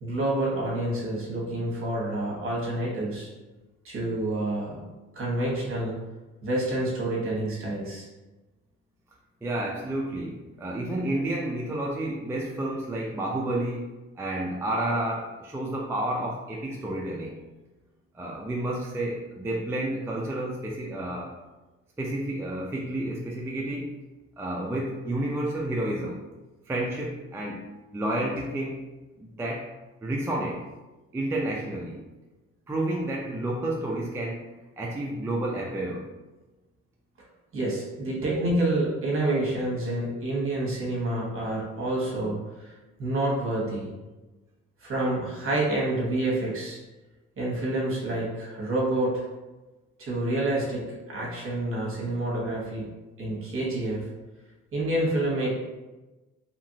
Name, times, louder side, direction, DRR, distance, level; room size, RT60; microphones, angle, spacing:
voice 1, 0.0-3.3 3.8-4.9 5.1-5.9 6.4-8.1 37.5-42.4 43.0-43.9 44.8-46.8 47.4-49.2 50.0-52.9 53.2-54.1 54.7-55.5, right 1 dB, 45° right, -4 dB, 1.1 m, -28 dB
voice 2, 9.4-17.4 18.1-21.3 22.0-23.9 24.4-26.2 26.7-27.6 27.9-28.8 29.2-29.7 30.0-30.6 31.1-32.0 32.7-34.4 34.8-36.1, right 1 dB, 10° right, -3 dB, 0.4 m, -30 dB
2.9 x 2.5 x 2.7 m, 1.1 s
cardioid pair, 90°, 30 cm